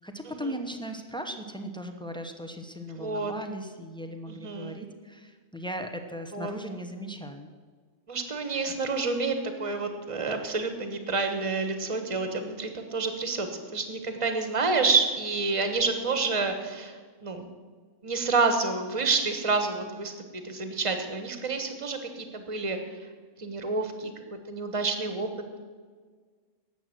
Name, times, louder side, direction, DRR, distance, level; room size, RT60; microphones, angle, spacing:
voice 1, 0.0-7.5, equal, 5° left, 4 dB, 0.6 m, -38 dB
voice 2, 3.0-3.3 4.3-4.8 6.3-6.5 8.1-17.5 18.0-22.8 23.4-24.1 24.5-25.3, right 4 dB, 25° right, 6 dB, 1.2 m, -28 dB
11.5 x 7.9 x 7.7 m, 1.5 s
omnidirectional pair, 1.6 m